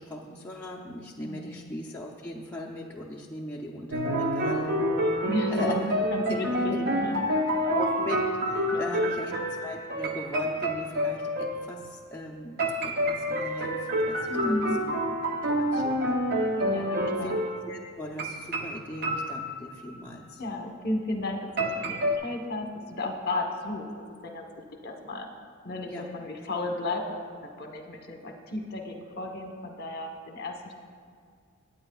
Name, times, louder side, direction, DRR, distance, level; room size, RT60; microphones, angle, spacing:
voice 1, 0.0-4.8 5.5-5.9 6.3-6.8 7.6-15.0 15.5-16.2 16.8-17.3 17.7-20.4 25.9-26.1, left 1 dB, 10° left, -4 dB, 0.6 m, -38 dB
voice 2, 1.2-1.7 5.3-7.2 7.6-7.7 8.7-8.8 14.3-14.8 16.7-17.4 20.4-23.9 24.2-24.4 24.8-25.3 25.6-30.7, left 2 dB, 45° left, 3 dB, 1.1 m, -33 dB
sound 1, 3.9-11.7 12.6-17.6 18.2-19.9 21.6-22.2, equal, 45° right, 0.8 m, -28 dB
18.0 x 8.7 x 2.4 m, 2.2 s
head